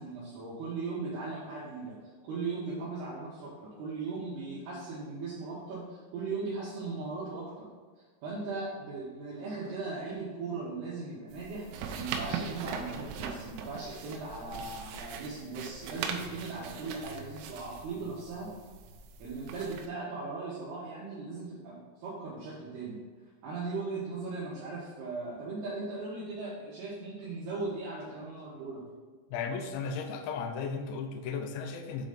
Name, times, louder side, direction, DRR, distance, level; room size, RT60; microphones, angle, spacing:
voice 1, 0.0-2.0 2.2-7.7 8.2-18.5 19.2-23.0 23.4-28.9, right 3 dB, 70° right, -8 dB, 3.2 m, -38 dB
sound 1, 11.3-19.9, right 6 dB, 85° right, 2.9 m, -40 dB
voice 2, 29.3-32.1, left 5 dB, 80° left, 5 dB, 2.2 m, -35 dB
8.2 x 4.1 x 5.1 m, 1.5 s
omnidirectional pair, 4.9 m